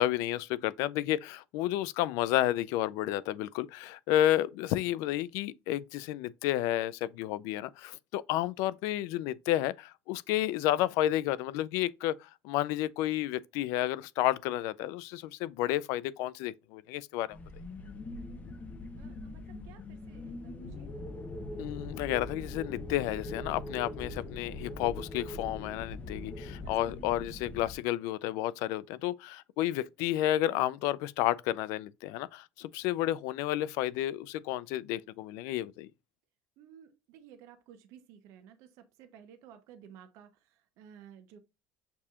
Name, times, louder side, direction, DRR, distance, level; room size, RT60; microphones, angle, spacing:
voice 1, 0.0-17.4 21.6-35.9, left 14 dB, 75° left, 0.3 m, -31 dB
sound 1, 17.3-27.8, left 2 dB, 25° left, 0.7 m, -42 dB
voice 2, 19.0-20.9 26.6-27.0 36.6-41.4, right 9 dB, 70° right, 0.8 m, -55 dB
6.8 x 2.8 x 2.3 m
cardioid pair, 130°, 5 cm